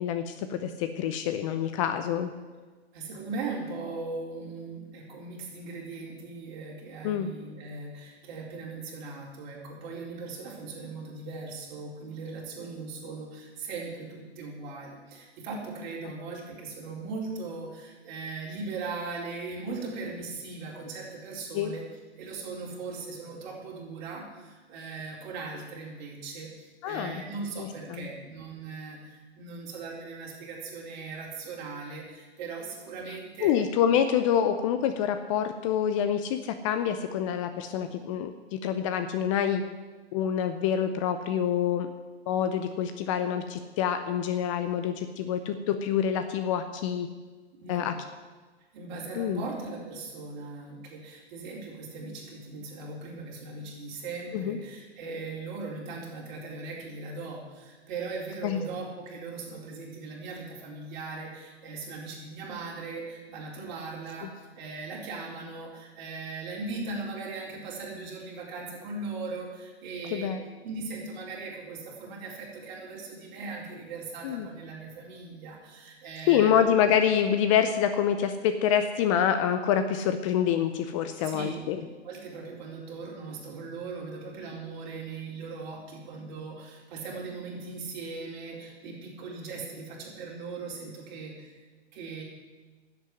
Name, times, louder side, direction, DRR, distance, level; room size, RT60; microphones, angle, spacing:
voice 1, 0.0-2.3 7.0-7.3 21.5-21.7 26.8-27.2 27.6-28.1 33.1-39.6 40.1-41.9 42.3-47.1 47.7-47.9 49.2-49.4 54.3-54.6 58.4-58.6 70.1-70.4 74.2-74.5 76.3-81.8, left 9 dB, 30° left, 9 dB, 0.7 m, -26 dB
voice 2, 2.9-21.8 22.2-33.5 47.5-47.9 48.7-70.4 70.6-76.6 81.2-91.5 91.9-92.2, right 3 dB, 45° right, -2 dB, 4.4 m, -39 dB
11.0 x 8.1 x 9.8 m, 1.3 s
hypercardioid pair, 140°, 33 cm